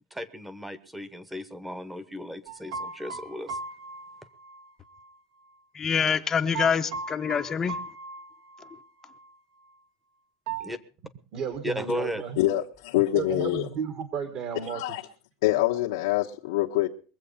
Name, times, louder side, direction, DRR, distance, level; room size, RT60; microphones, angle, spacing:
voice 1, 0.1-3.6 10.6-10.8 11.6-12.2, left 1 dB, 5° right, 1.1 m, -35 dB
sound 1, 2.5-5.1 6.5-8.8 9.1-9.3 10.5-10.7, right 5 dB, 70° right, 1.9 m, -37 dB
voice 2, 5.7-7.8, left 7 dB, 20° left, 0.8 m, -25 dB
voice 3, 11.3-12.4 13.1-14.8, right 8 dB, 45° right, 1.8 m, -33 dB
voice 4, 12.4-13.7 14.7-15.0 15.4-16.9, left 16 dB, 85° left, 1.2 m, -25 dB
22.5 x 7.8 x 5.5 m
supercardioid pair, 150°, 2 cm